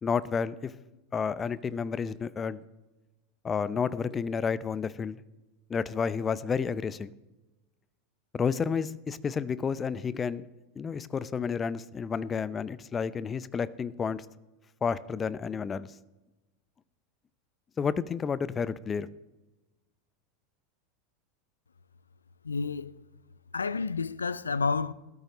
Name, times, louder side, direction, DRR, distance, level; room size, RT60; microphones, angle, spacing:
voice 1, 0.0-0.7 1.1-2.6 3.4-5.2 5.7-7.1 8.3-10.4 10.8-14.3 14.8-15.9 17.8-19.1, left 6 dB, 25° left, 0.6 m, -31 dB
voice 2, 22.4-22.9 23.5-24.9, left 4 dB, 80° left, 0.4 m, -30 dB
16.0 x 13.5 x 3.1 m
figure-of-eight pair, 85°, 0 cm